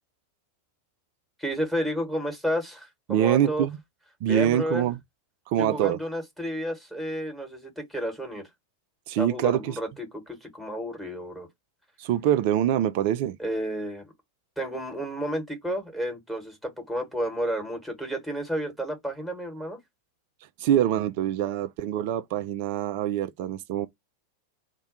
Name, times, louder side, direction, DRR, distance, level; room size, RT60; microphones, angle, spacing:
voice 1, 1.4-3.7 4.2-4.9 5.6-8.4 9.2-11.5 13.4-14.0 14.6-19.8, equal, ahead, 1.3 m, -31 dB
voice 2, 3.1-3.8 4.2-5.0 5.5-6.0 9.1-9.8 12.0-13.4 20.6-23.9, right 11 dB, 45° right, 0.3 m, -24 dB
2.3 x 2.2 x 3.9 m
figure-of-eight pair, 90°, 0 cm